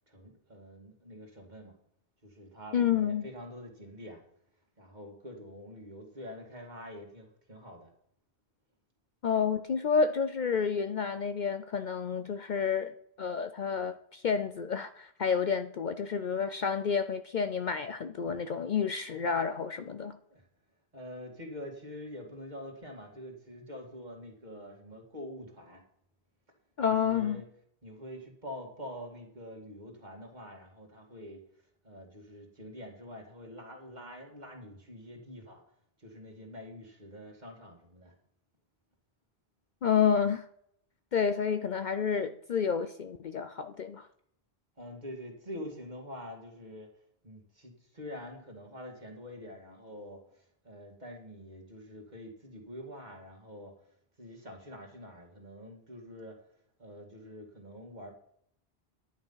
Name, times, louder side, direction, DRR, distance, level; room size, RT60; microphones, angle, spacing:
voice 1, 0.1-1.7 2.2-4.2 4.8-7.9 20.2-20.5 20.9-25.8 27.0-27.4 27.8-31.4 31.8-35.6 36.0-38.1 44.8-46.9 47.2-53.7 54.2-56.4 56.8-58.1, equal, 45° right, 2.4 m, -46 dB
voice 2, 2.7-3.3 9.2-12.9 13.2-20.1 26.8-27.4 39.8-40.4 41.1-44.1, left 6 dB, 55° left, 0.6 m, -29 dB
10.5 x 8.8 x 5.6 m
omnidirectional pair, 1.1 m